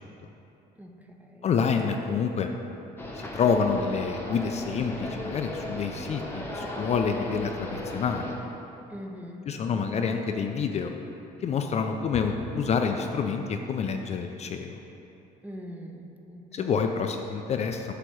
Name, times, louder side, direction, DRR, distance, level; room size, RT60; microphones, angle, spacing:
voice 1, 0.8-1.5 8.9-10.0 15.4-16.9, equal, 10° right, 2 dB, 0.6 m, -43 dB
voice 2, 1.4-2.5 3.2-8.3 9.5-10.9 11.4-14.8 16.5-17.9, left 6 dB, 40° left, 5 dB, 0.4 m, -28 dB
sound 1, 3.0-8.3, left 1 dB, 10° left, 0.9 m, -36 dB
8.0 x 3.0 x 6.2 m, 2.9 s
cardioid pair, 110°, 17 cm